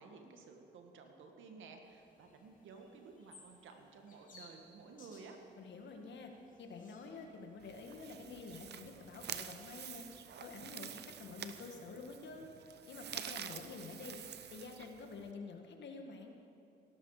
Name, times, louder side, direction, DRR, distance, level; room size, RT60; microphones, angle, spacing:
voice 1, 0.0-5.4, right 4 dB, 80° right, 4 dB, 1.7 m, -54 dB
sound 1, 1.8-9.5, left 3 dB, 40° left, 3.3 m, -64 dB
voice 2, 5.6-6.3 6.6-10.1 10.4-12.5 12.9-14.2 14.5-16.4, left 4 dB, 65° left, 3 dB, 1.8 m, -49 dB
sound 2, 7.6-15.3, right 9 dB, 60° right, 0.8 m, -48 dB
17.5 x 12.0 x 5.0 m, 2.7 s
cardioid pair, 90°, 20 cm